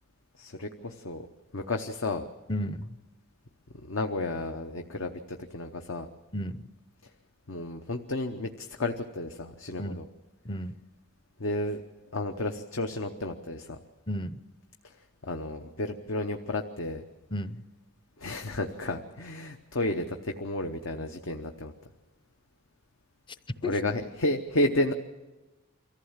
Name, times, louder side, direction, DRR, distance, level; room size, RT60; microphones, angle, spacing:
voice 1, 0.4-1.3 1.5-2.3 3.8-6.1 7.5-10.1 11.4-11.8 12.1-13.8 15.2-17.0 18.2-21.7 23.6-24.9, left 2 dB, 75° left, 6 dB, 0.9 m, -32 dB
voice 2, 2.5-3.0 6.3-6.7 9.8-10.0 10.4-10.8 14.1-14.4 17.3-17.6 23.6-23.8, left 1 dB, 25° left, 14 dB, 0.6 m, -33 dB
24.0 x 15.0 x 7.3 m, 1.1 s
head